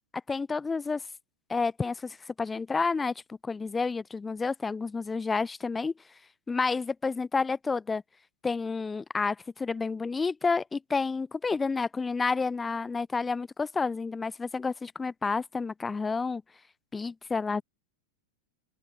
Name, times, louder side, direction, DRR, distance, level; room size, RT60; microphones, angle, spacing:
voice 1, 0.3-1.0 1.5-5.9 6.5-8.0 8.4-16.4 16.9-17.6, left 4 dB, 15° left, 1.0 m, -30 dB
figure-of-eight pair, 90°, 0 cm